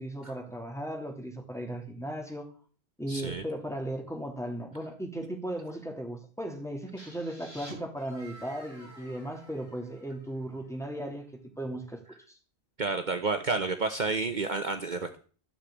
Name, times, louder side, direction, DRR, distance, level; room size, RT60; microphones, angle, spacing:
voice 1, 0.0-2.5 3.0-12.0 12.3-12.4, right 1 dB, 5° left, 2.8 m, -36 dB
voice 2, 3.1-3.4 12.8-15.2, right 3 dB, 50° right, 1.1 m, -30 dB
sound 1, 7.0-10.7, equal, 80° left, 7.9 m, -50 dB
13.5 x 6.5 x 8.4 m
omnidirectional pair, 1.0 m